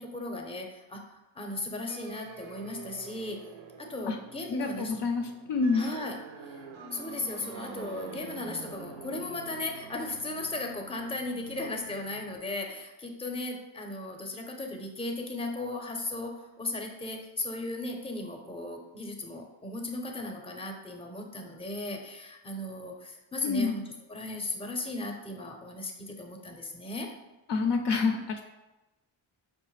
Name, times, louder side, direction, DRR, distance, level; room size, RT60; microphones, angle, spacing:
voice 1, 0.0-3.4 3.8-4.9 5.7-6.2 6.4-6.7 6.9-23.8 24.1-27.1, left 2 dB, 10° left, 3 dB, 0.6 m, -36 dB
sound 1, 1.9-12.4, right 5 dB, 70° right, 0.6 m, -47 dB
voice 2, 4.5-5.8 23.4-23.7 27.5-28.4, left 4 dB, 60° left, 4 dB, 0.5 m, -27 dB
4.9 x 2.2 x 3.1 m, 1.0 s
cardioid pair, 45°, 49 cm